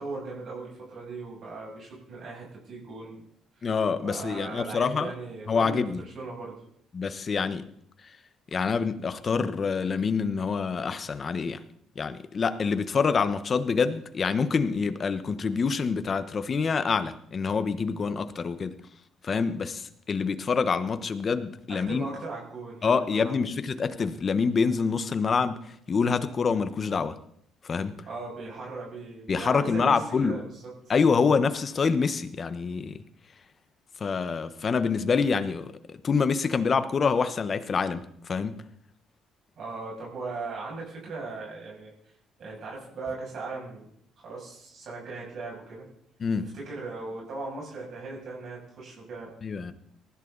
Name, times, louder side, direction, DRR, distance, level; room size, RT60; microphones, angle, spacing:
voice 1, 0.0-3.2 3.6-3.7 4.0-6.6 21.7-23.4 28.0-30.9 39.6-41.9 42.4-43.9 44.2-45.9 46.4-49.3, right 3 dB, 55° right, -3 dB, 7.4 m, -38 dB
voice 2, 3.6-5.1 5.5-6.0 6.9-7.6 8.5-11.6 11.9-18.8 19.2-22.1 22.8-25.6 25.9-27.1 27.7-27.9 29.3-30.4 30.9-33.0 34.0-35.7 36.0-38.0 38.3-38.6 46.2-46.5 49.4-49.7, left 5 dB, 35° left, 11 dB, 1.3 m, -26 dB
19.0 x 14.5 x 4.1 m, 0.69 s
cardioid pair, 105°, 0 cm